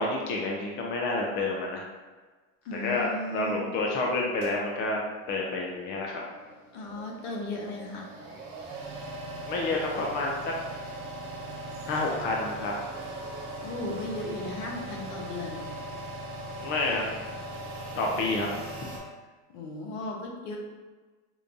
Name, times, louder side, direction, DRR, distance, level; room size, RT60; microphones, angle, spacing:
voice 1, 0.0-1.8 2.7-5.0 5.3-6.2 9.5-10.5 11.9-12.7 16.6-17.0 17.9-18.5, left 2 dB, 25° left, -1 dB, 0.4 m, -29 dB
voice 2, 2.6-3.7 6.7-8.1 13.6-15.7 19.5-20.6, left 2 dB, 65° left, 0 dB, 1.0 m, -36 dB
sound 1, 4.4-19.0, right 1 dB, 50° right, 1.4 m, -40 dB
5.2 x 2.2 x 2.6 m, 1.3 s
supercardioid pair, 125°, 41 cm